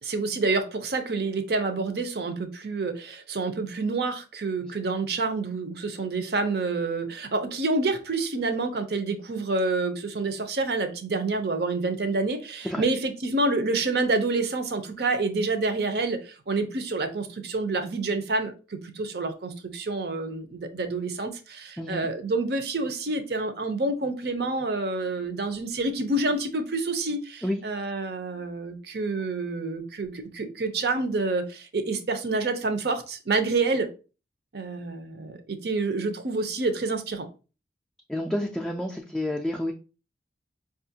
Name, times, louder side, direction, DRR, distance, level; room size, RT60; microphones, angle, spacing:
voice 1, 0.0-33.9 34.5-37.3, right 3 dB, 60° right, 0.6 m, -28 dB
voice 2, 38.1-39.7, left 1 dB, 5° left, 0.3 m, -29 dB
5.0 x 2.4 x 2.7 m
head